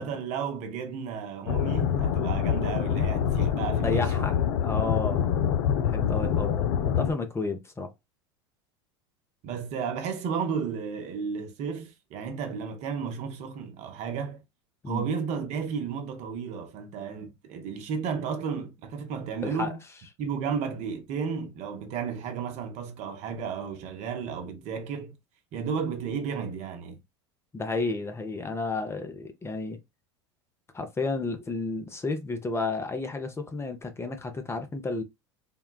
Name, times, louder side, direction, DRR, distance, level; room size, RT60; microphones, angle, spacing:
voice 1, 0.0-4.3 9.4-14.4 14.9-19.8 20.2-25.2 25.5-27.0, right 6 dB, 55° right, 0.8 m, -33 dB
sound 1, 1.5-7.1, left 8 dB, 70° left, 0.5 m, -26 dB
voice 2, 3.8-5.3 5.8-7.9 14.8-15.1 19.4-19.7 27.5-29.8 30.7-35.0, left 3 dB, 20° left, 0.6 m, -32 dB
3.7 x 2.2 x 2.2 m
hypercardioid pair, 90°, 14 cm